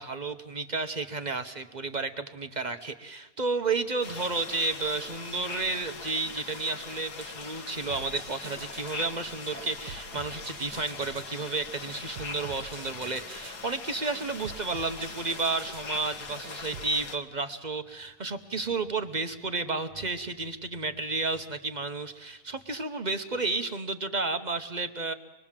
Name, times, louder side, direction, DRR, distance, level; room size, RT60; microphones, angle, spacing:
voice 1, 0.0-25.1, right 3 dB, 35° right, 8 dB, 0.8 m, -32 dB
sound 1, 4.0-17.2, left 4 dB, 85° left, 2.1 m, -41 dB
sound 2, 7.9-9.1 9.6-11.3 11.9-13.6 14.2-15.9 16.4-17.0, right 6 dB, 90° right, 1.6 m, -47 dB
25.5 x 21.0 x 7.4 m, 1.1 s
omnidirectional pair, 1.7 m